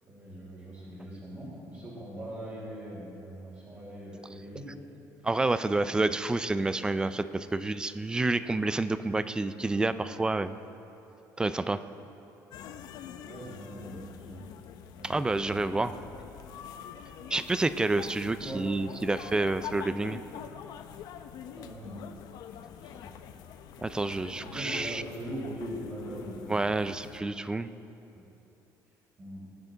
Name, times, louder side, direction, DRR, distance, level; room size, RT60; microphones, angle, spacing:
voice 1, 0.0-4.7 5.2-5.3 5.8-6.1 13.2-14.4 15.0-16.0 17.2-17.3 18.2-18.6 21.6-22.0 22.8-23.2 24.3-26.7 28.1-28.2 29.2-29.4, right 1 dB, 35° right, -9 dB, 3.6 m, -41 dB
voice 2, 5.2-10.5 11.4-11.8 15.0-15.9 17.3-20.2 23.8-25.0 26.5-27.7, right 2 dB, 10° right, 13 dB, 0.4 m, -29 dB
sound 1, 12.5-27.2, left 8 dB, 65° left, 0.7 m, -45 dB
20.5 x 9.6 x 3.9 m, 2.9 s
cardioid pair, 135°, 7 cm